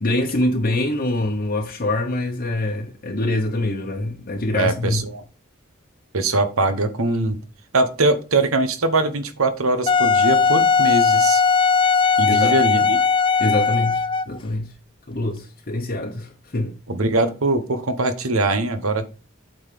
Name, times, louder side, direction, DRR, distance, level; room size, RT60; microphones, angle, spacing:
voice 1, 0.0-5.0 12.3-12.5 13.4-14.7 15.1-16.7, left 1 dB, 40° left, 0.9 m, -24 dB
voice 2, 4.5-5.2 6.1-7.4 7.7-11.4 12.2-13.0 16.9-19.1, right 2 dB, 80° right, 1.2 m, -22 dB
Wind instrument woodwind instrument, 9.9-14.4, left 5 dB, 25° left, 0.3 m, -18 dB
8.5 x 4.0 x 6.7 m
head